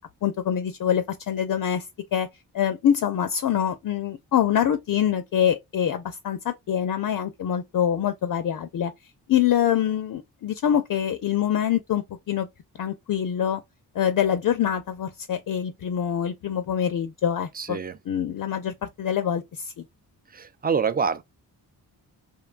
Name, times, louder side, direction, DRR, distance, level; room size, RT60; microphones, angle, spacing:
voice 1, 0.2-1.9 2.1-2.3 2.5-8.9 9.3-12.5 12.8-13.6 13.9-17.8 18.1-19.7, left 9 dB, 50° left, 0.5 m, -25 dB
voice 2, 17.5-18.0 20.3-21.2, right 6 dB, 25° right, 0.3 m, -26 dB
2.8 x 2.2 x 2.3 m
cardioid pair, 65°, 42 cm